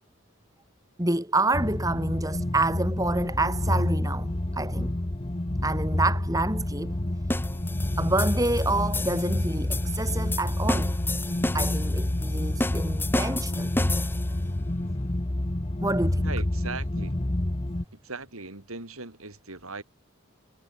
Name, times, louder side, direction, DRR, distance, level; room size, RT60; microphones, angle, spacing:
voice 1, 1.0-4.9 5.6-7.0 8.0-10.9 11.5-13.7 15.8-16.3, right 2 dB, 15° right, 2.4 m, -28 dB
sound 1, 1.5-17.8, left 1 dB, 25° left, 0.9 m, -28 dB
sound 2, 7.3-14.4, left 2 dB, 10° left, 1.5 m, -32 dB
voice 2, 16.2-17.2 17.9-19.8, right 3 dB, 80° right, 4.9 m, -39 dB
head